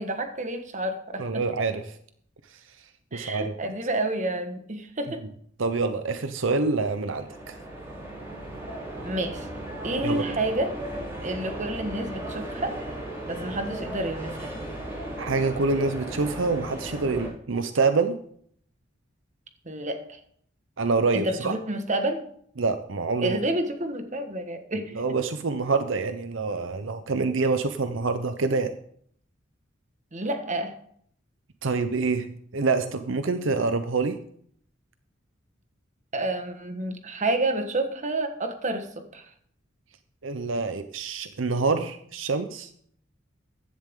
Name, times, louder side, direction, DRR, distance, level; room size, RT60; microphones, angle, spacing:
voice 1, 0.0-1.2 3.1-5.2 9.0-9.5 9.8-10.8 11.2-12.8 13.3-14.5 19.6-20.2 21.1-22.2 23.2-24.9 30.1-30.7 36.1-38.9 39.1-39.2, right 2 dB, 40° right, 6 dB, 1.5 m, -29 dB
voice 2, 1.2-2.0 2.5-2.6 3.1-3.5 5.6-7.6 10.0-10.2 15.2-18.2 20.8-21.6 22.6-23.4 24.9-28.7 31.6-34.2 40.2-42.7, right 4 dB, 75° right, 9 dB, 0.8 m, -26 dB
sound 1, 6.4-17.3, right 1 dB, 15° right, 5.3 m, -36 dB
15.0 x 11.0 x 3.7 m, 0.64 s
head